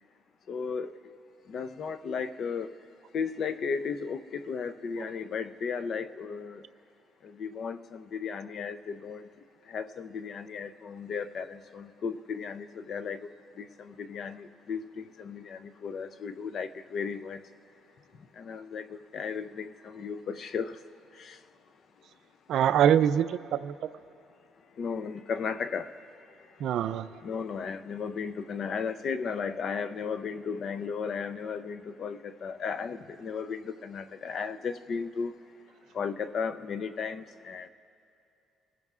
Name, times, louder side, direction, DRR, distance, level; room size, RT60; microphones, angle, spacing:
voice 1, 0.5-0.9 1.5-2.7 3.1-6.6 7.2-9.3 9.7-13.3 13.6-17.4 18.4-20.7 21.2-21.4 24.8-25.9 27.2-35.3 35.9-37.7, left 6 dB, 45° left, 12 dB, 0.5 m, -35 dB
voice 2, 22.5-23.7 26.6-27.1, right 9 dB, 60° right, 13 dB, 0.4 m, -24 dB
26.0 x 16.0 x 2.4 m, 2.7 s
cardioid pair, 150°, 0 cm